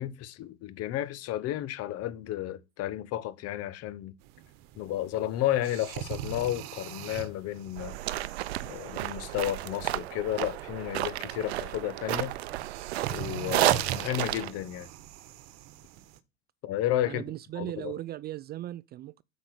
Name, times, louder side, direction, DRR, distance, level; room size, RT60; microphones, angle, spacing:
voice 1, 0.0-4.1 4.8-8.0 8.6-12.4 13.1-14.9 16.6-17.2 17.6-17.9, left 13 dB, 50° left, 1.1 m, -32 dB
sound 1, 4.2-16.2, right 11 dB, 60° right, 1.1 m, -42 dB
sound 2, 7.8-14.5, right 15 dB, 80° right, 0.6 m, -31 dB
voice 2, 17.1-19.2, right 14 dB, 30° right, 0.4 m, -38 dB
8.1 x 5.2 x 6.4 m
hypercardioid pair, 85°, 31 cm